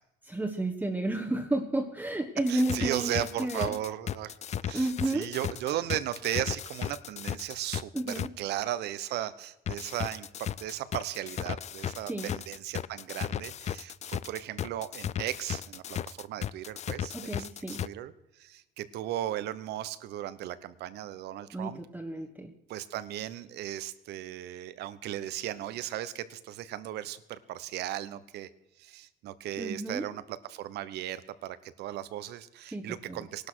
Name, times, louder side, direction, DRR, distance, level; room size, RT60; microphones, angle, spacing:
voice 1, 0.2-3.8 4.7-5.3 7.9-8.3 12.1-12.4 17.1-17.8 21.5-22.5 29.6-30.1 32.7-33.2, right 2 dB, 10° right, 4 dB, 1.4 m, -32 dB
sound 1, 2.5-8.3 9.7-17.9, left 10 dB, 40° left, 0.5 m, -35 dB
voice 2, 2.5-4.4 4.6-17.3 17.8-21.8 22.7-28.5 28.8-30.2 30.5-33.5, right 13 dB, 80° right, 15 dB, 1.1 m, -36 dB
18.5 x 12.0 x 6.4 m, 0.91 s
cardioid pair, 110°, 17 cm